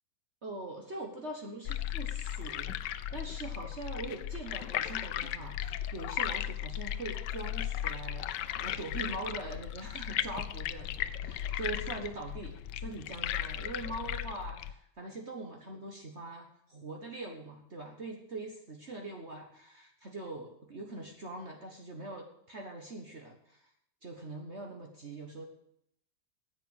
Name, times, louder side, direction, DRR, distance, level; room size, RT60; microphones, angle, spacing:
voice 1, 0.4-8.3 8.6-23.7 24.0-25.5, right 2 dB, 40° right, 2 dB, 1.6 m, -42 dB
sound 1, 1.7-14.7, left 11 dB, 80° left, 1.3 m, -36 dB
10.5 x 8.2 x 8.9 m, 0.72 s
omnidirectional pair, 1.9 m